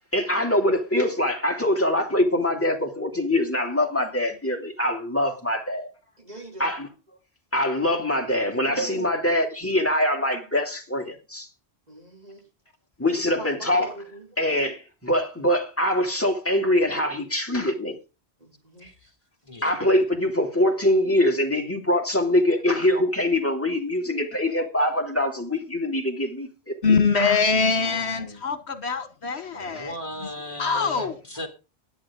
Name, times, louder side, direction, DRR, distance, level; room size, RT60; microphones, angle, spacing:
voice 1, 0.1-5.9 6.6-6.9 7.5-11.5 13.0-13.9 14.4-18.0 19.6-26.8 27.2-27.4 29.7-29.8, left 1 dB, 10° left, 2.5 m, -23 dB
voice 2, 6.2-6.7 8.7-9.1 11.9-12.4 13.0-14.3 18.4-18.9 27.8-28.0 31.0-31.2, right 1 dB, 40° right, 2.8 m, -42 dB
voice 3, 18.8-19.1 19.4-19.7 27.7-28.5 29.5-31.5, left 1 dB, 30° left, 2.7 m, -38 dB
voice 4, 26.8-29.9 30.6-31.2, left 5 dB, 75° left, 1.5 m, -23 dB
16.0 x 10.5 x 3.7 m
omnidirectional pair, 1.1 m